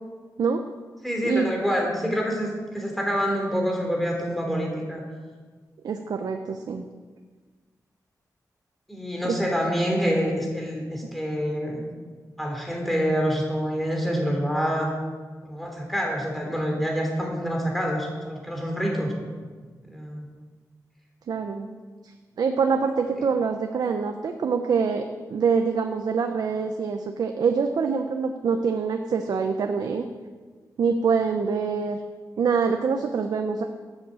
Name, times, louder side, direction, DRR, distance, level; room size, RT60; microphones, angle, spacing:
voice 1, 1.0-5.0 8.9-11.8 12.4-14.9 15.4-19.1 19.9-20.2, equal, ahead, 0 dB, 3.1 m, -26 dB
voice 2, 5.8-6.9 9.2-9.4 21.3-21.7 22.4-25.0 25.3-30.1 30.8-32.0 32.4-33.6, right 5 dB, 70° right, 5 dB, 0.8 m, -25 dB
12.0 x 9.0 x 7.6 m, 1.5 s
wide cardioid pair, 155°, 7 cm